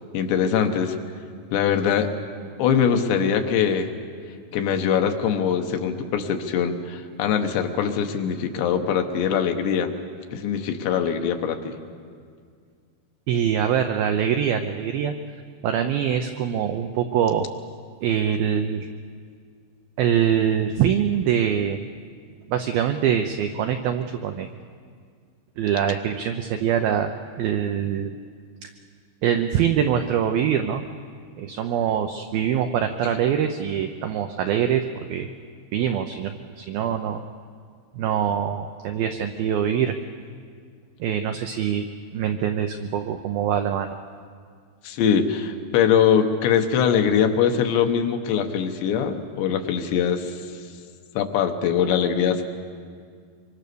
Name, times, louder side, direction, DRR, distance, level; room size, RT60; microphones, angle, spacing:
voice 1, 0.1-1.0 1.5-2.1 2.6-3.9 4.5-9.9 10.3-11.8 44.8-50.4 51.2-52.4, left 7 dB, 75° left, 5 dB, 3.3 m, -22 dB
voice 2, 13.3-15.1 15.6-17.5 18.0-18.9 20.0-21.8 22.5-24.5 25.6-27.1 27.4-28.2 28.6-28.7 29.2-30.8 31.4-35.3 35.7-37.2 38.0-40.0 41.0-41.9 42.1-44.0, right 9 dB, 80° right, 6 dB, 2.1 m, -24 dB
25.0 x 24.5 x 6.9 m, 2.1 s
omnidirectional pair, 5.3 m